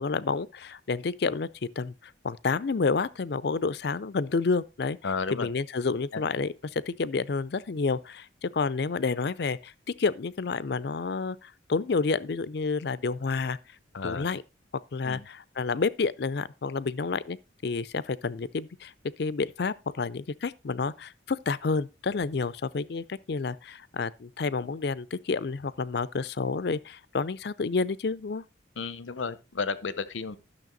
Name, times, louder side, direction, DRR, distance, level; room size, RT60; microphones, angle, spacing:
voice 1, 0.0-1.5 1.8-1.9 2.2-5.0 5.3-9.7 10.0-13.6 14.0-14.4 14.9-17.4 17.6-18.9 19.2-28.4, left 4 dB, 60° left, 0.5 m, -29 dB
voice 2, 5.0-5.5 6.1-6.2 13.9-14.3 15.0-15.3 28.8-30.4, left 4 dB, 90° left, 0.8 m, -32 dB
12.0 x 6.5 x 3.9 m
head